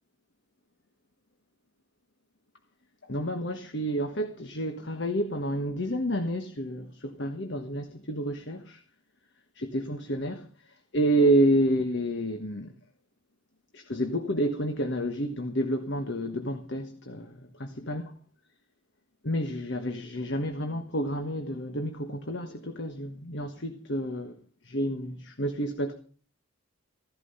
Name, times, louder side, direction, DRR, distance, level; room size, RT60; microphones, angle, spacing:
voice 1, 3.1-8.8 9.5-12.7 13.7-18.0 19.2-24.3 24.6-25.9, right 1 dB, 55° left, 1.4 m, -29 dB
16.0 x 12.5 x 5.6 m
head